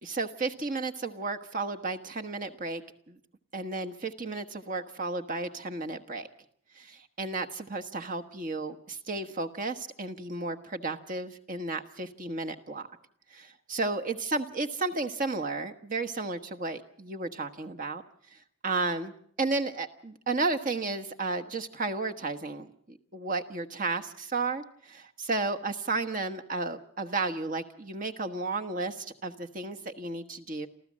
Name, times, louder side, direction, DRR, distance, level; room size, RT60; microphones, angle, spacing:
voice 1, 0.0-3.2 3.5-6.3 6.7-12.9 13.3-18.0 18.3-19.1 19.4-30.7, right 3 dB, 40° right, 5 dB, 1.3 m, -33 dB
28.0 x 14.5 x 7.5 m, 0.64 s
head